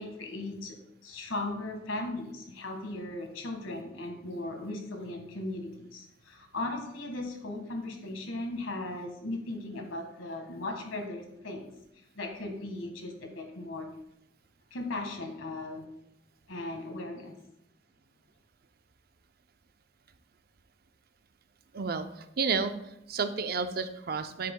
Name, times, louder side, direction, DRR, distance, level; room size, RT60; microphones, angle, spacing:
voice 1, 0.0-11.7 12.1-13.9 14.7-15.9 16.5-17.4, left 2 dB, 85° left, 3 dB, 1.6 m, -37 dB
voice 2, 21.7-24.5, right 5 dB, 50° right, 9 dB, 0.5 m, -31 dB
9.3 x 8.1 x 2.2 m, 0.80 s
head